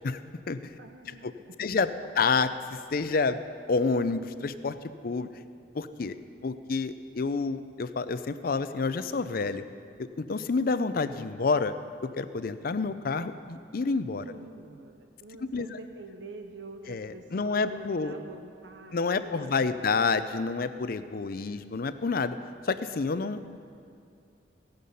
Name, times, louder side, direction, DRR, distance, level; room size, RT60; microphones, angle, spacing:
voice 1, 0.8-1.7 14.2-19.8, right 2 dB, 75° right, 5 dB, 0.8 m, -46 dB
voice 2, 1.6-1.9 2.2-3.4 3.7-4.8 5.0-5.3 5.7-6.2 6.4-9.6 10.0-11.7 12.2-14.2 15.4-15.7 16.9-18.1 18.9-22.4 22.7-23.6, left 4 dB, 55° left, 12 dB, 0.5 m, -28 dB
16.0 x 10.5 x 5.5 m, 2.4 s
head